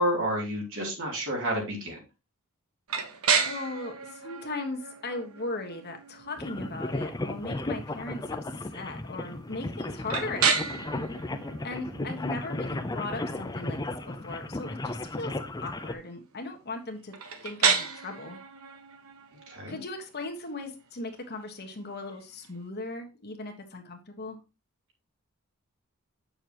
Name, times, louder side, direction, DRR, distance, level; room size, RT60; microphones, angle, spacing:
voice 1, 0.0-2.0 12.0-12.2 19.5-19.8, equal, 65° right, -1 dB, 3.1 m, -30 dB
sound 1, 2.9-22.6, right 6 dB, 80° right, 1.2 m, -34 dB
voice 2, 3.4-8.4 8.7-10.9 11.6-13.8 14.1-15.3 15.6-17.1 17.4-18.4 19.7-24.4, left 2 dB, 50° left, 3 dB, 1.5 m, -38 dB
sound 2, 6.4-15.9, left 2 dB, 20° left, 0.6 m, -35 dB
8.0 x 6.8 x 3.0 m, 0.28 s
head